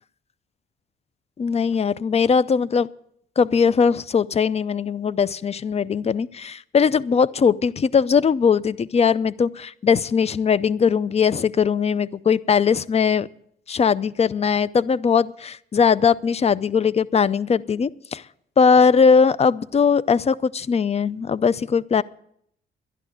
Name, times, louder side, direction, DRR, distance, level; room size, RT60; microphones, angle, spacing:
voice 1, 1.4-2.9 3.4-13.3 13.7-18.2 18.6-22.0, left 6 dB, 30° left, 20 dB, 0.5 m, -20 dB
11.5 x 11.0 x 7.9 m, 0.70 s
cardioid pair, 90°, 20 cm